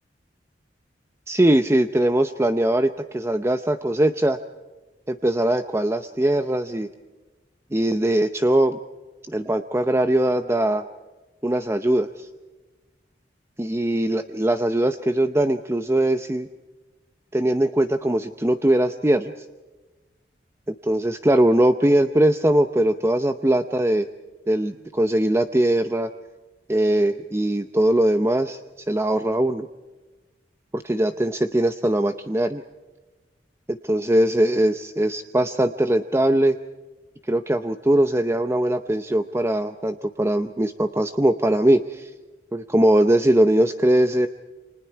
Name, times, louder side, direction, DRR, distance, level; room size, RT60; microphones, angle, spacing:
voice 1, 1.3-4.4 5.1-6.9 7.7-8.8 9.3-10.9 11.4-12.3 13.6-16.5 17.3-19.3 20.7-24.1 24.5-26.1 26.7-28.6 28.9-29.7 30.7-32.6 33.7-36.6 37.3-42.1 42.5-44.3, right 1 dB, 15° right, 8 dB, 0.7 m, -21 dB
29.5 x 26.5 x 4.6 m, 1.2 s
head